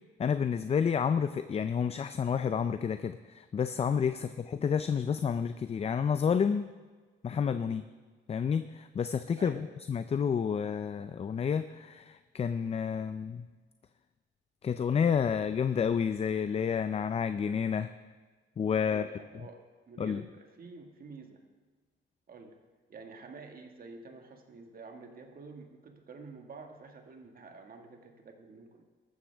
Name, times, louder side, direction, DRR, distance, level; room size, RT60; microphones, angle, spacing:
voice 1, 0.2-6.7 7.2-7.8 8.3-9.6 9.9-13.5 14.6-17.9 18.6-19.1 20.0-20.2, left 7 dB, 30° left, 11 dB, 0.4 m, -30 dB
voice 2, 9.4-9.7 18.9-21.4 22.3-22.6 22.9-28.8, right 4 dB, 45° right, 4 dB, 1.7 m, -49 dB
14.5 x 13.0 x 3.4 m, 1.4 s
cardioid pair, 90°, 20 cm